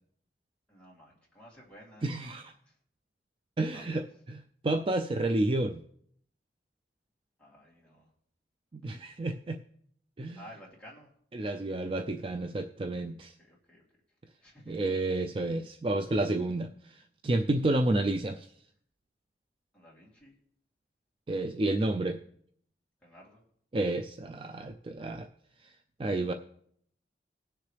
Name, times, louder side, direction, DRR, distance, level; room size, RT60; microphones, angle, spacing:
voice 1, 0.7-2.3 2.7-2.8 3.7-4.0 7.4-8.1 9.0-9.1 10.4-11.1 13.5-13.8 14.4-14.7 19.7-20.3 23.0-23.4, equal, 5° left, -6 dB, 3.0 m, -53 dB
voice 2, 2.0-2.5 3.6-5.8 8.7-9.6 10.2-10.4 11.3-13.3 14.7-18.5 21.3-22.2 23.7-25.3 25.6-25.7 26.0-26.3, right 2 dB, 30° right, 6 dB, 0.4 m, -30 dB
19.5 x 6.7 x 3.3 m, 0.67 s
head